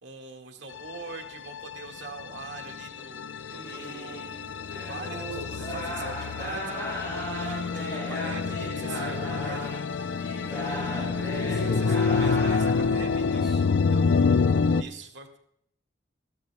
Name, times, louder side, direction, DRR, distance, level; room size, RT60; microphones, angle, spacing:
voice 1, 0.0-4.3 4.6-7.1 7.4-9.7 11.6-15.4, right 3 dB, 80° right, 3 dB, 1.8 m, -43 dB
sound 1, 0.8-14.8, left 5 dB, 75° left, 0.4 m, -27 dB
sound 2, 3.5-12.9, equal, 25° left, 6.7 m, -36 dB
voice 2, 10.4-12.1 13.1-13.6, right 1 dB, ahead, -8 dB, 4.6 m, -42 dB
15.0 x 13.0 x 3.4 m, 0.70 s
head